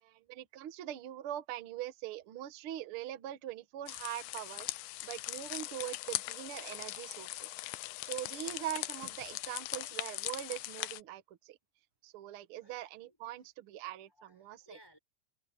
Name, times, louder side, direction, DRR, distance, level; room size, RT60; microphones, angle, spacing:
voice 1, 0.0-4.7 5.0-7.5 8.0-11.6 12.0-14.8, right 13 dB, 75° right, 1.2 m, -42 dB
sound 1, 3.9-11.0, left 18 dB, 85° left, 2.5 m, -40 dB
voice 2, 6.8-8.0 12.6-13.2 14.1-15.0, equal, 5° left, 4.8 m, -63 dB
open air
omnidirectional pair, 4.1 m